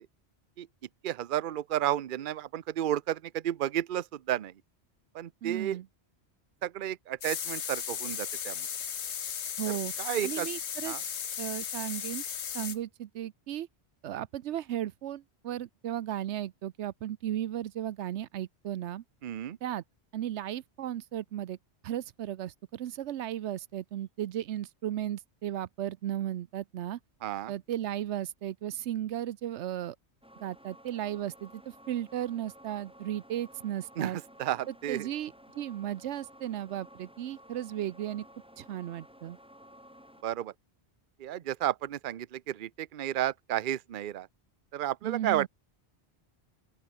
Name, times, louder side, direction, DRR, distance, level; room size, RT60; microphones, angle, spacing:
voice 1, 1.0-4.5 5.1-5.8 6.6-8.7 10.0-10.5 10.9-11.0 12.6-12.7 19.2-19.6 27.2-27.5 34.0-35.1 40.2-40.5 41.2-44.3 44.7-45.5, right 12 dB, 55° right, 0.8 m, -32 dB
voice 2, 5.4-5.9 9.6-9.9 10.2-11.0 11.4-12.2 12.5-13.7 14.0-19.0 19.6-19.8 20.1-21.6 21.8-27.0 27.5-30.0 30.4-31.6 31.9-34.2 34.7-38.3 38.6-39.4 45.0-45.5, right 12 dB, 90° right, 1.0 m, -35 dB
sound 1, 7.2-12.8, left 8 dB, 80° left, 1.3 m, -36 dB
sound 2, 30.2-40.2, equal, 5° right, 7.5 m, -54 dB
open air
omnidirectional pair, 1.1 m